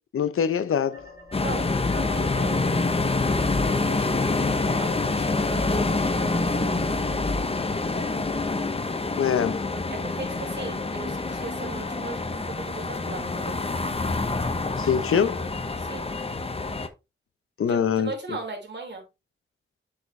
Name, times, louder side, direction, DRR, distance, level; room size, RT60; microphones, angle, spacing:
voice 1, 0.1-1.1 9.2-9.6 14.8-15.5 17.6-18.1, left 7 dB, 90° left, 0.7 m, -23 dB
sound 1, 0.8-4.7 5.1-8.5, left 1 dB, 45° left, 2.4 m, -34 dB
sound 2, 1.3-16.9, left 3 dB, 25° left, 0.8 m, -27 dB
voice 2, 1.4-2.7 3.3-4.3 4.7-6.8 9.9-13.6 15.8-16.1 17.7-19.0, right 3 dB, 55° right, 3.2 m, -38 dB
8.1 x 5.0 x 3.2 m
wide cardioid pair, 120°, 21 cm